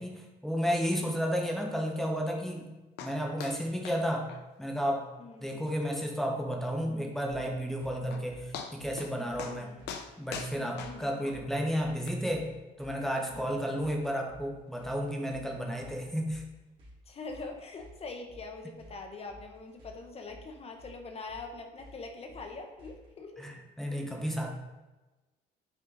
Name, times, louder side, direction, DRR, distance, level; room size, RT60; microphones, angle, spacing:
voice 1, 0.0-2.7 3.0-4.3 4.6-5.0 5.4-9.7 10.2-12.5 12.8-16.4 23.4-24.5, equal, ahead, 1 dB, 1.1 m, -32 dB
sound 1, 3.0-3.1 3.4-3.6 3.8-4.0 4.3-4.4 4.8-4.9 5.3-5.4 5.9-6.0 7.7-7.8 8.1-8.2 8.5-9.1 9.4-9.6 9.9-11.4 12.1-12.2, left 7 dB, 80° left, 0.7 m, -41 dB
voice 2, 5.2-5.7 9.2-9.9 10.5-11.4 13.3-13.8 15.6-15.7 17.1-23.4, left 3 dB, 35° left, 4 dB, 1.0 m, -44 dB
sound 2, 7.3-23.2, equal, 30° right, 2.2 m, -54 dB
6.1 x 4.3 x 3.9 m, 1.1 s
cardioid pair, 110°, 17 cm